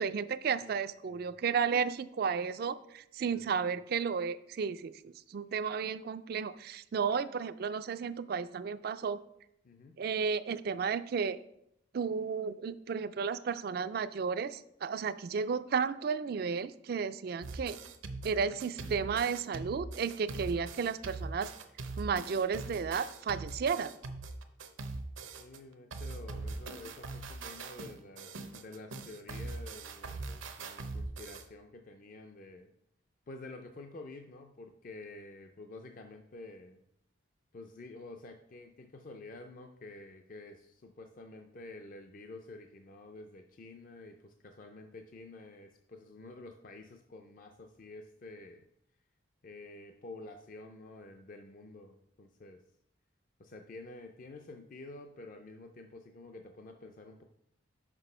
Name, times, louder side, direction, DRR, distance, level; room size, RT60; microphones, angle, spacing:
voice 1, 0.0-9.2 10.0-11.4 11.9-17.8 18.2-21.5 22.0-23.9, right 6 dB, 50° right, 14 dB, 0.3 m, -33 dB
voice 2, 3.3-3.7 9.6-10.0 18.4-18.6 25.4-32.7 33.3-36.8 37.5-48.6 49.4-52.6 53.4-57.2, left 2 dB, 40° left, 4 dB, 0.4 m, -49 dB
sound 1, 17.4-25.6 25.9-31.4, right 3 dB, 75° right, 0.7 m, -42 dB
6.0 x 5.2 x 5.5 m, 0.78 s
head